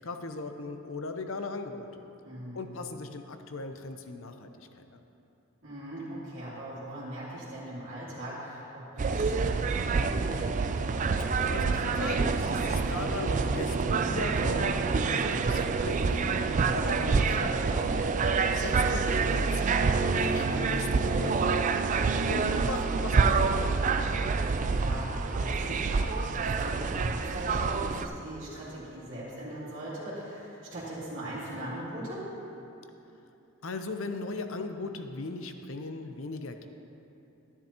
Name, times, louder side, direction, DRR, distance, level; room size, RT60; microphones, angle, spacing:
voice 1, 0.0-2.0 2.5-5.0 11.4-14.8 15.1-17.9 18.5-21.8 22.3-23.6 33.6-36.7, left 3 dB, 65° left, 7 dB, 0.7 m, -38 dB
voice 2, 2.2-2.6 5.6-10.4 18.8-19.3 24.0-24.3 24.8-32.2, right 1 dB, 60° right, -10 dB, 2.7 m, -40 dB
sound 1, 9.0-28.1, right 4 dB, 35° right, 0.3 m, -27 dB
13.0 x 12.0 x 2.9 m, 2.9 s
head